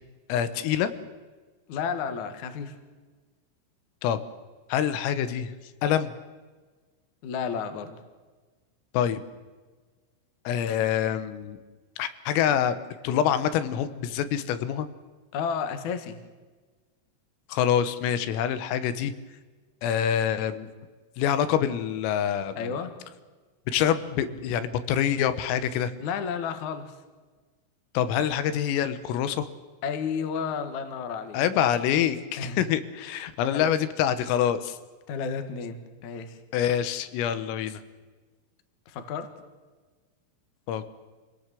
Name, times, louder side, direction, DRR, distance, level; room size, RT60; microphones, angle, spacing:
voice 1, 0.3-0.9 4.0-4.2 4.7-5.5 5.8-6.1 8.9-9.2 10.5-11.6 12.0-12.8 13.0-14.9 17.5-19.1 19.8-20.7 21.2-22.7 23.7-25.9 28.0-29.5 31.3-34.8 36.5-37.8 40.7-41.0, left 9 dB, 90° left, 12 dB, 3.8 m, -26 dB
voice 2, 1.7-2.7 7.2-8.0 15.3-16.2 22.6-22.9 26.0-26.9 29.8-31.4 32.4-32.6 33.5-33.7 35.1-36.4 38.9-39.3, left 6 dB, 60° left, 9 dB, 2.2 m, -32 dB
27.0 x 18.0 x 7.6 m, 1.3 s
omnidirectional pair, 5.8 m